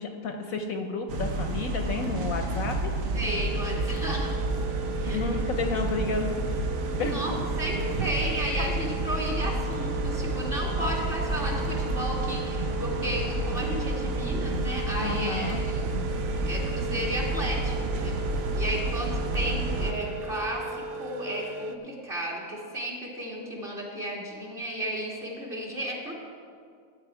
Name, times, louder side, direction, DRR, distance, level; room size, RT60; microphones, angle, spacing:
voice 1, 0.0-2.9 5.1-6.4 7.0-7.2 15.0-15.6, left 4 dB, 65° left, 4 dB, 1.0 m, -31 dB
sound 1, 1.1-19.9, right 2 dB, 60° right, 1.1 m, -30 dB
voice 2, 3.1-4.4 4.9-5.2 7.0-15.9 16.4-26.1, right 1 dB, 35° right, -3 dB, 2.1 m, -34 dB
sound 2, 3.3-21.8, right 2 dB, 80° right, 1.3 m, -37 dB
13.5 x 8.5 x 4.8 m, 2.2 s
omnidirectional pair, 1.8 m